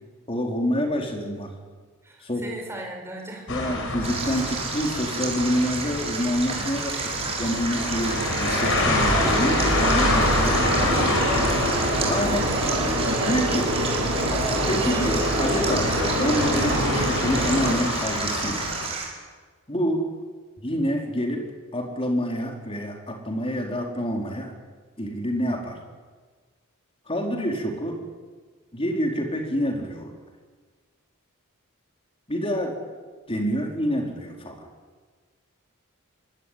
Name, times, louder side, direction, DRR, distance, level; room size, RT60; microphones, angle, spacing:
voice 1, 0.3-1.5 2.2-2.4 3.5-6.9 7.2-11.2 12.1-12.4 13.2-13.7 14.7-18.6 19.7-20.0 20.6-24.5 25.0-25.8 27.1-28.0 28.7-30.1 32.3-32.8 33.3-34.6, equal, 25° left, 1 dB, 4.5 m, -27 dB
voice 2, 2.0-3.5 6.6-6.8, right 1 dB, 10° right, 0 dB, 5.4 m, -39 dB
sound 1, 3.5-18.9, left 2 dB, 65° left, 6.3 m, -28 dB
Stream, 4.0-19.0, right 4 dB, 30° right, 6.3 m, -31 dB
sound 2, 6.9-17.7, right 1 dB, 65° right, 7.3 m, -26 dB
25.0 x 20.5 x 9.6 m, 1.5 s
head